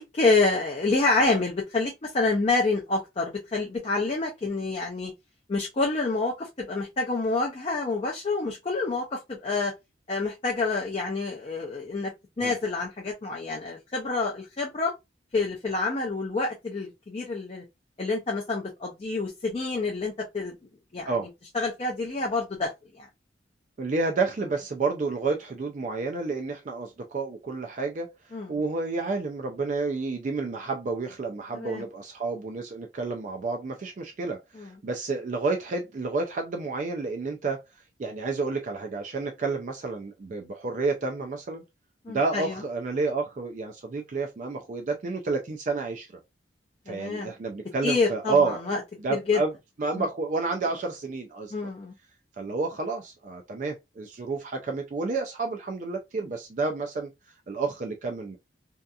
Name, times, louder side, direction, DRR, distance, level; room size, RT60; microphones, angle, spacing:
voice 1, 0.0-5.1 5.5-9.7 10.1-12.1 12.4-14.9 15.3-17.6 18.0-20.5 20.9-21.3 21.5-22.7 23.0-23.1 28.3-28.5 31.5-31.8 34.6-34.7 42.1-42.6 46.9-47.3 47.8-48.8 49.1-49.4 50.0-50.1 51.5-51.9, left 3 dB, 30° left, 0.4 m, -27 dB
voice 2, 23.8-28.1 28.5-37.6 38.0-41.6 42.1-46.1 46.9-48.6 49.0-49.5 49.8-51.7 52.4-57.1 57.5-58.4, right 3 dB, 40° right, 0.3 m, -30 dB
2.7 x 2.4 x 2.3 m
head